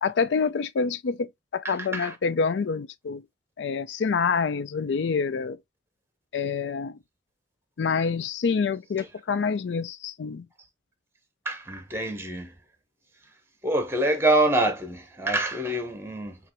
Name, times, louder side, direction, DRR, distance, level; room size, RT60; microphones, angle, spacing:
voice 1, 0.0-3.2 3.6-5.6 6.3-7.0 7.8-10.4, left 5 dB, 75° left, 0.4 m, -27 dB
voice 2, 1.6-2.1 11.4-12.5 13.6-16.4, right 2 dB, 15° right, 0.9 m, -25 dB
5.8 x 2.5 x 2.9 m
head